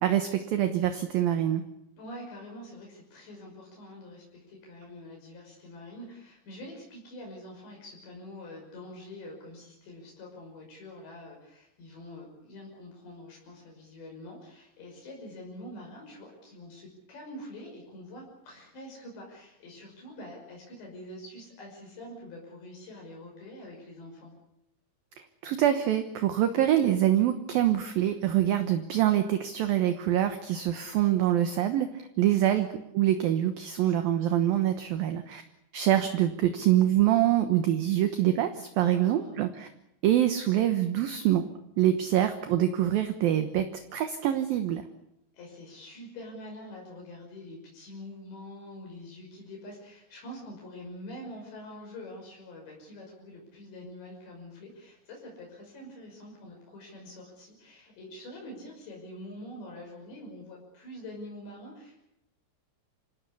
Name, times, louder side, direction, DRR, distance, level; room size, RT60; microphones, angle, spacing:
voice 1, 0.0-1.6 25.4-32.7 32.9-35.4 35.7-39.7 40.0-41.4 41.8-44.8, right 12 dB, 70° right, 8 dB, 2.5 m, -25 dB
voice 2, 2.0-24.3 32.1-32.6 33.8-34.2 38.8-39.5 45.3-62.0, left 1 dB, 70° left, -1 dB, 8.1 m, -45 dB
26.5 x 17.5 x 8.4 m, 0.81 s
omnidirectional pair, 5.2 m